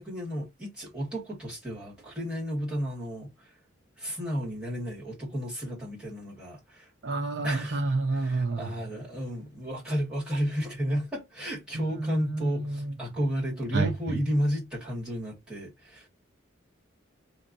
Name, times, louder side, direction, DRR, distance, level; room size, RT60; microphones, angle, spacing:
voice 1, 0.0-3.5 4.0-6.9 7.4-7.8 8.1-16.1, equal, 5° right, 2.1 m, -32 dB
voice 2, 7.0-8.7 11.7-12.9 13.7-13.9, right 3 dB, 60° right, 0.8 m, -29 dB
4.4 x 2.8 x 2.7 m
head